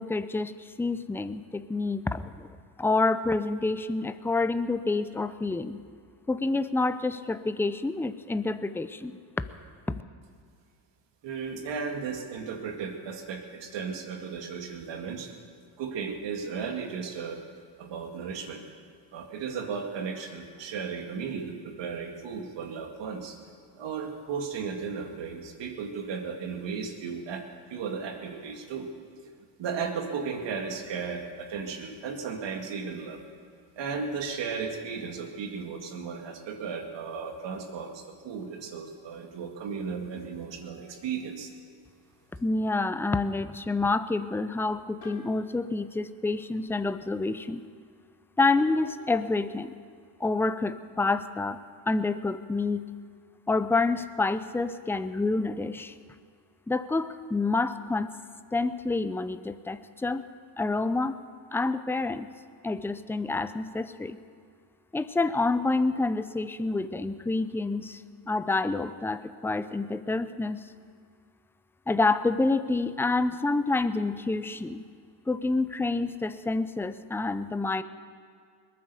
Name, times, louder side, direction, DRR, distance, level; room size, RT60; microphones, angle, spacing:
voice 1, 0.0-2.5 2.8-5.8 6.3-9.1 9.9-10.0 42.4-47.7 48.4-49.7 50.2-51.6 51.9-52.8 53.5-55.9 56.7-58.1 58.5-60.2 60.6-61.2 61.5-62.3 62.6-64.2 64.9-68.0 68.3-70.6 71.9-74.9 75.3-77.8, left 3 dB, 5° left, 12 dB, 0.6 m, -28 dB
voice 2, 11.2-15.3 15.8-17.4 17.8-18.6 19.1-23.4 23.7-27.4 27.7-28.9 29.6-33.2 33.8-41.5, right 5 dB, 65° right, 3 dB, 2.2 m, -35 dB
sound 1, 45.0-47.1 48.5-51.9 52.3-52.5 53.4-54.9 55.2-55.5, left 4 dB, 45° left, 3.3 m, -55 dB
20.5 x 9.5 x 6.8 m, 2.2 s
supercardioid pair, 85°, 46 cm